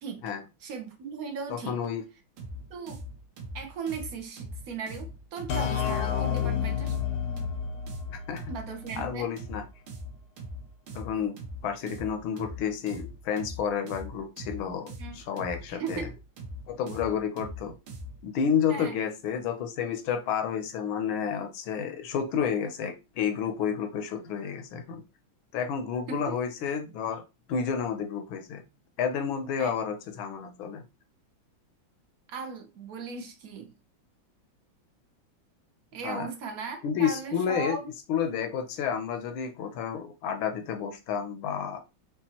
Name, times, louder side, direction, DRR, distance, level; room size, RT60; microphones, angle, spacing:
voice 1, 0.6-1.8 2.7-3.0 3.5-6.9 8.5-9.3 15.0-15.2 15.7-16.1 18.7-18.9 26.1-26.4 29.6-29.7 32.3-33.7 35.9-37.9, right 5 dB, 60° right, 1.1 m, -37 dB
voice 2, 1.5-2.0 8.1-8.5 9.0-9.6 10.9-11.4 11.6-16.1 16.7-17.7 18.2-25.0 25.5-27.2 27.5-28.6 29.0-30.8 36.0-36.3 36.8-37.8 38.1-41.8, left 7 dB, 80° left, 1.5 m, -30 dB
sound 1, 2.4-18.3, equal, 90° right, 1.6 m, -42 dB
sound 2, 5.5-9.1, left 8 dB, 65° left, 0.9 m, -30 dB
5.5 x 2.4 x 2.9 m
omnidirectional pair, 2.2 m